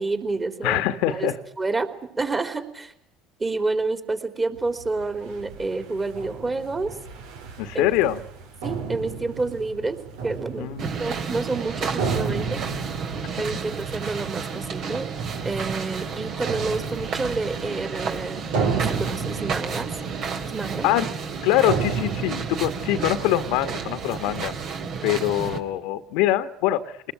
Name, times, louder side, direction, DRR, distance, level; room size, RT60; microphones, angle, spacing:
voice 1, 0.0-0.8 1.1-1.3 1.6-1.9 2.2-2.9 3.4-7.0 7.7-7.9 8.6-10.0 10.2-12.6 13.4-15.1 15.4-19.9 20.4-20.9 24.2-24.3, right 3 dB, 25° right, 8 dB, 3.9 m, -29 dB
voice 2, 0.6-1.3 7.6-8.2 10.6-10.9 20.8-21.1 21.4-24.5 25.0-26.9, left 13 dB, 70° left, 11 dB, 1.4 m, -23 dB
sound 1, 4.5-24.4, right 5 dB, 75° right, 3.1 m, -34 dB
sound 2, 10.8-25.6, right 5 dB, 55° right, 3.4 m, -31 dB
26.5 x 20.5 x 9.2 m, 0.70 s
hypercardioid pair, 75°, 0 cm